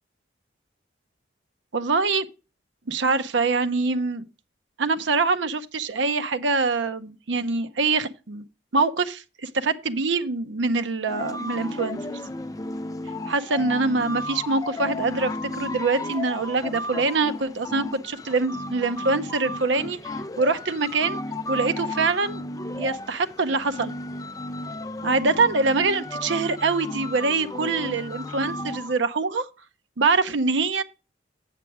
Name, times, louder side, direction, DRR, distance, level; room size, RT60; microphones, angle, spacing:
voice 1, 1.7-2.3 2.9-4.3 4.8-8.4 8.7-12.2 13.3-20.0 20.4-21.2 21.5-22.4 22.8-23.9 25.0-29.5 30.0-30.8, right 3 dB, 80° right, 0.7 m, -24 dB
sound 1, 11.1-28.9, left 1 dB, 20° left, 0.3 m, -34 dB
7.6 x 6.9 x 4.7 m
head